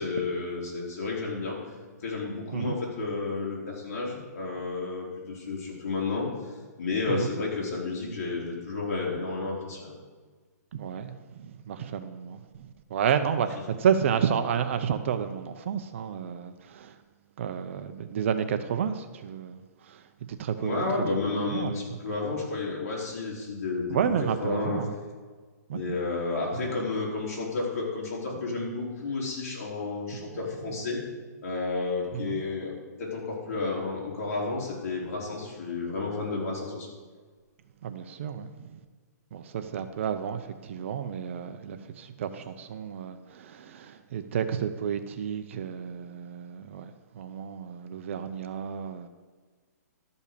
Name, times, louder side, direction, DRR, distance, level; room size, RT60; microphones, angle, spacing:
voice 1, 0.0-1.6 2.0-6.3 6.8-9.9 20.6-24.1 24.4-24.8 25.7-31.0 31.4-32.7 33.0-36.9, left 3 dB, 50° left, -3 dB, 3.8 m, -31 dB
voice 2, 10.7-16.9 17.4-19.6 19.9-20.0 20.3-20.8 21.5-21.8 23.9-24.9 25.7-25.8 26.7-26.9 32.1-32.4 37.8-38.8 39.3-49.1, right 8 dB, 45° right, 9 dB, 0.7 m, -31 dB
12.0 x 5.4 x 6.7 m, 1.5 s
hypercardioid pair, 160°, 10 cm